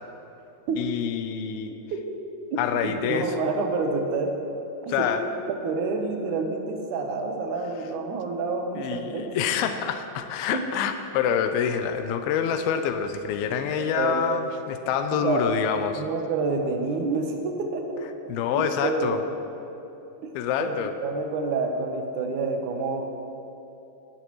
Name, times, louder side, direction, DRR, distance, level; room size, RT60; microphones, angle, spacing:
voice 1, 0.8-1.7 2.6-3.4 4.9-5.2 8.7-16.0 18.3-19.2 20.3-20.9, left 8 dB, 90° left, 8 dB, 2.5 m, -26 dB
voice 2, 2.5-4.3 4.8-5.1 5.5-9.5 10.5-10.8 13.8-14.3 15.2-15.5 16.0-18.0 18.5-19.2 20.2-20.3 20.6-20.7 21.0-23.3, right 4 dB, 65° right, 3 dB, 2.3 m, -28 dB
18.5 x 11.5 x 3.1 m, 3.0 s
omnidirectional pair, 4.3 m